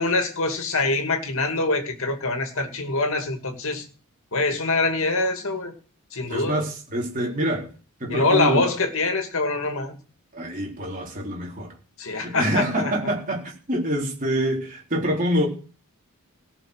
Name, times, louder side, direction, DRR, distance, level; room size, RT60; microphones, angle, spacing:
voice 1, 0.0-3.8 4.3-5.7 6.1-6.6 8.1-9.9 12.0-12.9, left 3 dB, 65° left, 2.3 m, -24 dB
voice 2, 6.3-7.7 8.0-8.7 10.3-11.7 12.1-15.5, right 1 dB, 40° right, 3.7 m, -26 dB
17.5 x 6.1 x 6.4 m
head